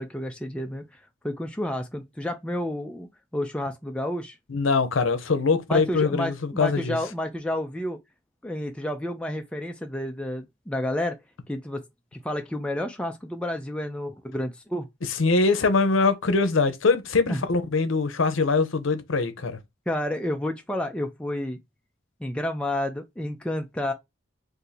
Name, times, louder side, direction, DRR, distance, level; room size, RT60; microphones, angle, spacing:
voice 1, 0.0-4.4 5.7-8.0 8.4-11.2 11.5-11.8 12.1-14.9 17.3-17.5 19.9-21.6 22.2-23.9, left 1 dB, 5° left, 0.3 m, -30 dB
voice 2, 4.5-7.0 15.2-19.6, left 4 dB, 75° left, 0.7 m, -23 dB
2.6 x 2.6 x 3.9 m
head